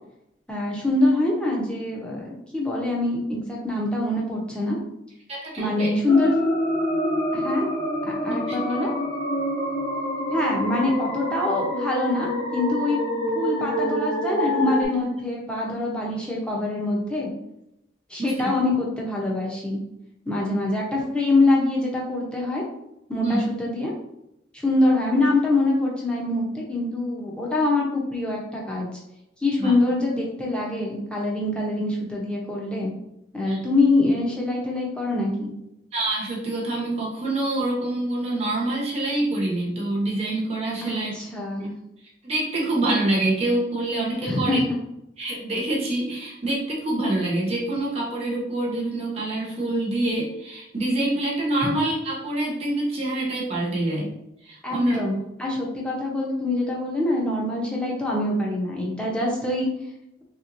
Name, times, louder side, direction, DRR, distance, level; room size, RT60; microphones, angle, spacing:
voice 1, 0.5-4.8 5.6-6.3 7.3-7.7 8.2-8.9 10.3-13.0 13.3-17.3 18.1-19.8 20.3-22.6 23.1-23.9 24.6-28.9 29.4-32.9 33.3-35.5 40.8-41.7 44.2-44.8 51.6-51.7 54.6-55.1 55.4-59.7, left 2 dB, 5° left, -3 dB, 0.7 m, -24 dB
voice 2, 5.3-5.9 8.3-8.6 18.2-18.3 23.2-23.4 29.6-29.7 33.5-33.6 35.9-41.1 42.2-44.6 45.2-54.1 54.4-55.0, right 2 dB, 35° right, -3 dB, 0.7 m, -26 dB
sound 1, 6.1-14.9, equal, 50° left, 1.3 m, -26 dB
3.3 x 2.9 x 2.6 m, 0.83 s
head